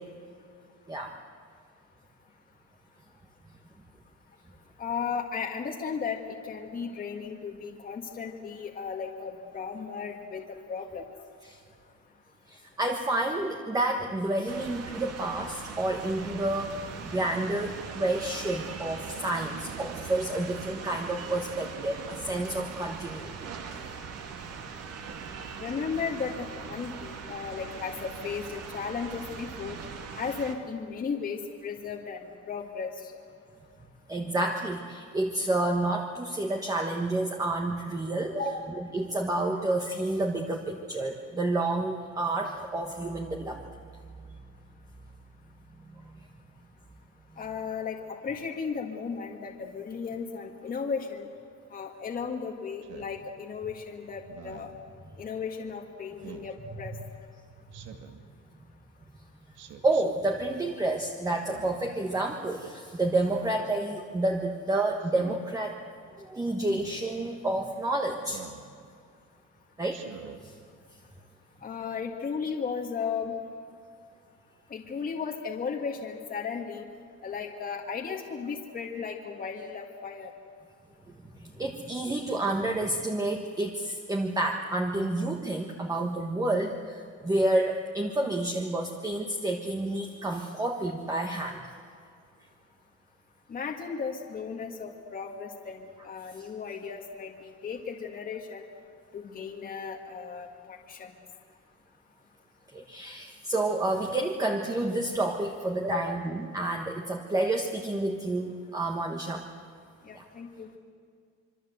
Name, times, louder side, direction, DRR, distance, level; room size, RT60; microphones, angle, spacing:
voice 1, 4.8-11.1 25.6-29.8 30.1-33.1 38.3-38.7 47.4-51.3 51.7-54.7 55.2-56.9 71.6-73.4 74.7-76.8 77.2-80.3 93.5-98.6 99.1-101.1 105.8-106.2 110.0-110.7, left 6 dB, 30° left, 1 dB, 1.8 m, -35 dB
voice 2, 12.5-23.5 34.1-43.6 45.9-46.1 59.8-65.7 66.2-68.4 69.8-70.0 70.4-70.5 81.4-91.6 96.4-96.5 102.7-109.4 110.1-110.2, right 2 dB, 10° right, 1 dB, 1.4 m, -29 dB
sound 1, 14.5-30.5, right 5 dB, 55° right, 2.8 m, -41 dB
Speech synthesizer, 52.8-53.2 54.3-54.8 56.2-56.5 57.7-58.2 59.5-60.0 61.3-61.9 63.2-63.7 65.0-65.4 66.6-66.9 68.2-68.6 69.9-70.4, right 8 dB, 85° right, 2.4 m, -45 dB
26.5 x 24.0 x 8.0 m, 2.3 s
cardioid pair, 170°, 30 cm